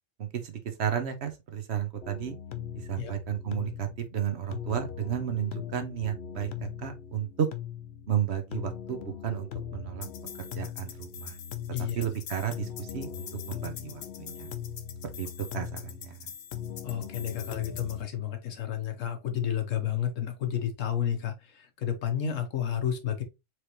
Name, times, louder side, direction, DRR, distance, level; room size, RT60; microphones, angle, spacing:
voice 1, 0.2-2.3 2.7-7.5 8.1-10.1 10.4-11.4 11.9-14.5 15.2-16.3, right 9 dB, 60° right, 1.0 m, -33 dB
sound 1, 2.0-18.0, left 9 dB, 60° left, 0.8 m, -40 dB
voice 2, 11.7-12.0 16.8-23.2, left 9 dB, 90° left, 1.3 m, -31 dB
4.6 x 3.3 x 2.9 m
omnidirectional pair, 1.3 m